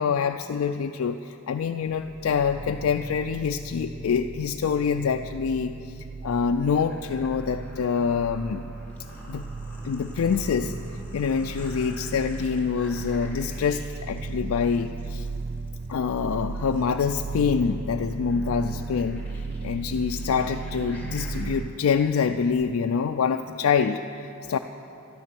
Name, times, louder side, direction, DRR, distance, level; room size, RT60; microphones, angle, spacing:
voice 1, 0.0-5.7 6.0-8.6 9.3-9.5 9.8-10.7 11.1-15.3 15.9-19.2 19.6-24.6, left 6 dB, 80° left, 5 dB, 0.4 m, -26 dB
sound 1, 1.8-21.7, right 4 dB, 50° right, 0.4 m, -36 dB
sound 2, 6.5-21.5, left 1 dB, 10° left, 2.3 m, -49 dB
12.5 x 12.0 x 6.0 m, 2.7 s
head